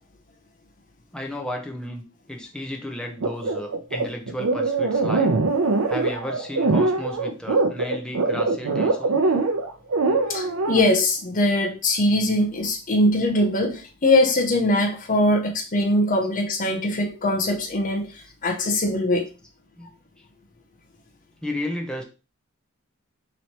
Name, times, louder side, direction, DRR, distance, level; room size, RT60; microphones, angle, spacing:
voice 1, 1.1-2.0 2.3-5.3 5.9-9.2 10.8-11.0 19.8-19.9 21.4-22.0, left 1 dB, 5° left, 0.7 m, -33 dB
sound 1, 3.2-10.8, right 3 dB, 75° right, 0.6 m, -22 dB
voice 2, 10.3-19.3, left 1 dB, 40° left, 0.7 m, -22 dB
3.1 x 3.0 x 4.2 m
head